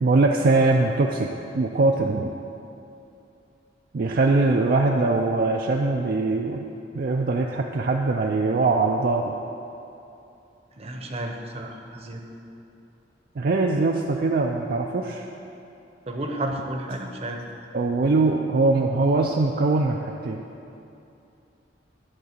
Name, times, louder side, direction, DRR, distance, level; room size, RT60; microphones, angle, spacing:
voice 1, 0.0-1.3 1.5-2.3 3.9-6.7 6.9-9.3 13.4-15.2 17.7-20.4, right 3 dB, 55° right, 1 dB, 0.4 m, -22 dB
voice 2, 10.8-12.2 16.1-17.4, right 1 dB, 35° right, 2 dB, 0.8 m, -32 dB
11.0 x 3.8 x 6.6 m, 2.8 s
head